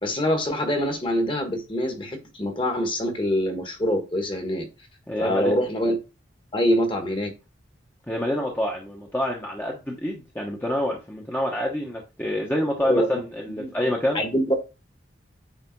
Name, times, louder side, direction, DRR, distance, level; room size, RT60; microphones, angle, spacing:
voice 1, 0.0-4.6 5.2-5.9 6.5-7.3 12.9-13.1 13.6-13.7 14.1-14.6, equal, 25° left, 1.5 m, -24 dB
voice 2, 5.1-5.5 8.1-14.2, left 1 dB, 10° left, 1.0 m, -27 dB
9.0 x 3.5 x 4.6 m
head